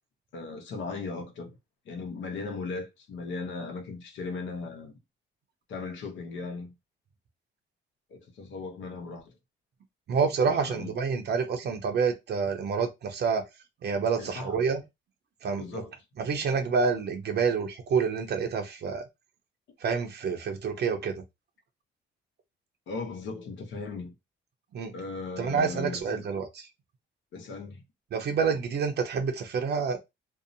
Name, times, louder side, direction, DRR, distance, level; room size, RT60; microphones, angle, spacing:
voice 1, 0.3-1.6 1.9-4.9 5.7-6.7 8.1-9.3 10.5-10.9 14.2-14.7 15.6-15.9 22.9-24.1 24.9-26.3 27.3-27.8, left 4 dB, 70° left, 0.8 m, -37 dB
voice 2, 10.1-13.4 13.8-14.8 15.4-15.8 16.2-19.0 19.8-21.2 24.7-24.9 25.4-26.5 28.1-30.0, right 5 dB, 55° right, 0.6 m, -28 dB
2.7 x 2.0 x 2.6 m
cardioid pair, 90°, 20 cm